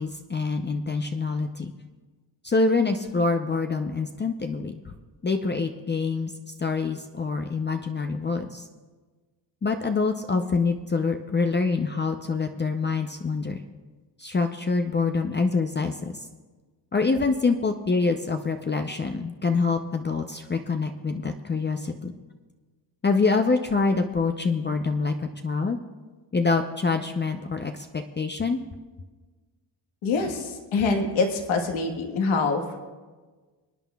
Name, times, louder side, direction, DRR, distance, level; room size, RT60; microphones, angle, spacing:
voice 1, 0.0-1.7 2.4-4.9 5.2-6.3 6.6-8.6 9.6-13.6 14.2-16.1 16.9-22.1 23.0-25.8 26.3-28.6, left 4 dB, 25° left, 6 dB, 0.6 m, -25 dB
voice 2, 30.0-32.8, left 4 dB, 85° left, 3 dB, 1.5 m, -25 dB
27.5 x 9.1 x 2.3 m, 1.3 s
cardioid pair, 75°, 46 cm